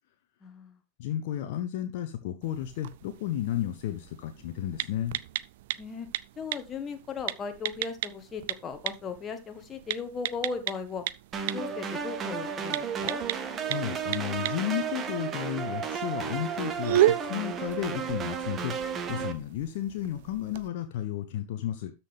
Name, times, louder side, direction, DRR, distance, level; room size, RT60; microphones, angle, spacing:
voice 1, 0.4-0.8 5.8-6.1 6.4-11.0 11.5-13.2, left 5 dB, 20° left, 1.4 m, -37 dB
voice 2, 1.0-5.1 13.7-21.9, left 12 dB, 50° left, 0.9 m, -33 dB
sound 1, 2.4-20.7, right 14 dB, 55° right, 0.4 m, -35 dB
sound 2, 11.3-19.3, right 7 dB, 25° right, 1.0 m, -33 dB
12.5 x 4.4 x 3.4 m
figure-of-eight pair, 90°, 0 cm